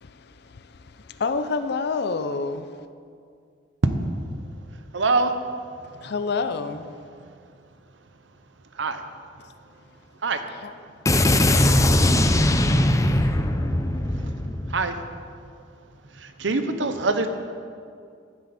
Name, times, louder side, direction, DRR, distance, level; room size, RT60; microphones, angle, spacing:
voice 1, 0.0-2.7 6.0-6.9 10.6-10.7, left 4 dB, 60° left, 0.5 m, -28 dB
voice 2, 4.9-5.3 8.8-9.0 10.2-10.4 14.7-14.9 16.4-17.3, right 3 dB, 85° right, 0.8 m, -23 dB
voice 3, 11.0-14.8, left 1 dB, 15° left, 0.6 m, -20 dB
15.0 x 7.8 x 4.2 m
head